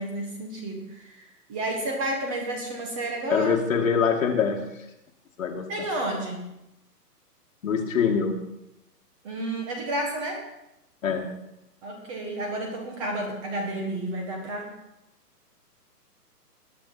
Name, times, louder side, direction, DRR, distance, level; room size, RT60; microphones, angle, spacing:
voice 1, 0.0-3.5 5.7-6.5 9.2-10.5 11.8-14.7, right 1 dB, 20° right, 2 dB, 1.5 m, -31 dB
voice 2, 3.3-4.9 5.4-5.9 7.6-8.4 11.0-11.4, left 6 dB, 55° left, 2 dB, 1.8 m, -24 dB
19.5 x 8.5 x 4.1 m, 0.88 s
hypercardioid pair, 160°, 48 cm